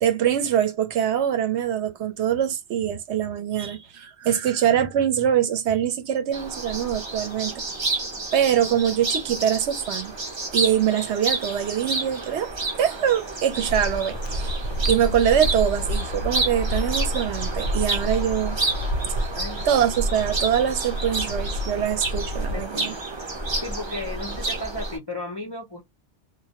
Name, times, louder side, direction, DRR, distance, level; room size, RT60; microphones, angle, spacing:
voice 1, 0.0-7.5 8.3-10.1 10.5-12.5 12.8-14.5 14.9-18.6 19.7-22.9, right 9 dB, 75° right, 0.9 m, -23 dB
sound 1, 6.3-25.0, right 2 dB, 35° right, 0.5 m, -30 dB
sound 2, 13.7-22.7, equal, 85° left, 0.9 m, -29 dB
voice 2, 19.3-19.9 22.5-23.0 23.6-25.8, left 2 dB, 40° left, 0.3 m, -35 dB
2.2 x 2.0 x 2.8 m
omnidirectional pair, 1.2 m